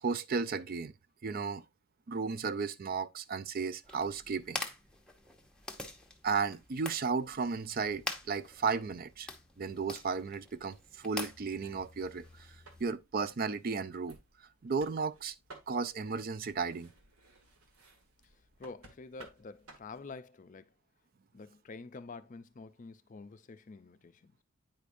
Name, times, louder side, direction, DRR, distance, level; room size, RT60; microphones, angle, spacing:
voice 1, 0.0-0.9 1.2-1.6 2.1-4.6 6.2-9.3 9.6-14.2 14.6-15.4 15.7-16.9, right 5 dB, 40° right, 0.4 m, -34 dB
sound 1, 3.8-12.8, left 2 dB, 5° left, 0.7 m, -45 dB
sound 2, 12.2-20.1, right 3 dB, 90° right, 1.7 m, -58 dB
voice 2, 18.2-20.7 21.3-24.4, left 4 dB, 35° left, 0.4 m, -48 dB
9.1 x 4.9 x 2.6 m
head